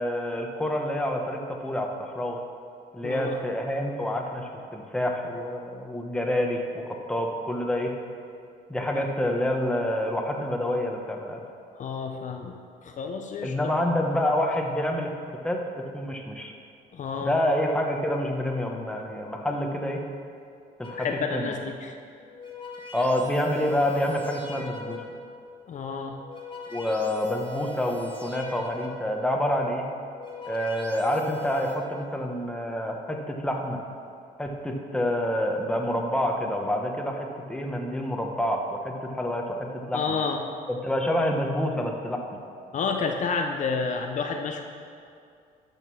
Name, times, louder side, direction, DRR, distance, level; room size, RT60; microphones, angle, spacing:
voice 1, 0.0-2.4 2.9-7.9 8.7-11.4 13.4-15.1 15.4-16.5 17.2-20.0 20.8-21.5 22.9-25.0 26.7-29.9 30.5-33.8 34.4-40.2 40.7-42.2, left 1 dB, 5° left, 1 dB, 1.2 m, -28 dB
voice 2, 3.0-3.4 8.9-9.0 11.8-13.6 16.9-17.3 20.9-21.9 25.7-26.2 39.9-40.4 42.7-44.6, left 5 dB, 45° left, 3 dB, 0.8 m, -30 dB
sound 1, 20.8-21.4 22.1-25.3 26.0-29.2 29.9-31.7, left 4 dB, 30° left, 1.7 m, -41 dB
12.0 x 5.3 x 6.2 m, 2.4 s
cardioid pair, 110°, 17 cm